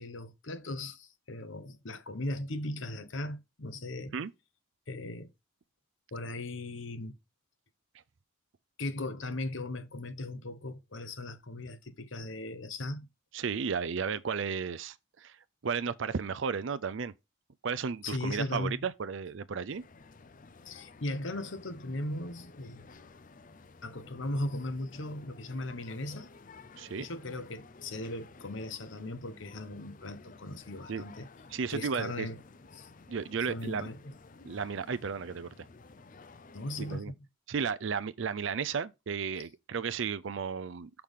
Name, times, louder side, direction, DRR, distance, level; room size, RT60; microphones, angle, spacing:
voice 1, 0.0-4.1 4.9-5.3 6.1-7.2 8.8-13.1 18.0-18.8 20.6-22.9 23.8-26.3 27.0-31.3 31.7-32.4 32.7-32.9 33.5-34.0 36.5-37.1, left 1 dB, 65° left, 1.1 m, -38 dB
voice 2, 13.3-15.4 15.6-17.1 17.6-19.8 26.8-27.1 30.9-31.0 31.5-32.3 33.1-33.9 34.4-35.7 36.8-37.1 37.5-41.0, right 6 dB, 65° right, 0.5 m, -34 dB
sound 1, 19.7-37.0, left 3 dB, 40° left, 0.5 m, -54 dB
6.6 x 5.8 x 3.6 m
head